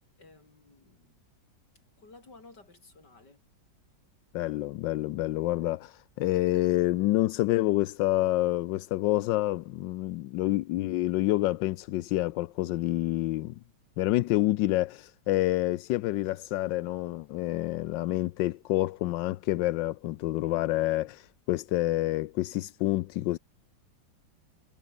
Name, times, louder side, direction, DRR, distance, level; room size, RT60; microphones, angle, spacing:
voice 1, 0.2-1.2 2.0-3.4, left 3 dB, 65° left, 5.7 m, -54 dB
voice 2, 4.3-13.6 14.0-21.2 21.5-23.4, left 16 dB, 85° left, 1.3 m, -28 dB
omnidirectional pair, 1.9 m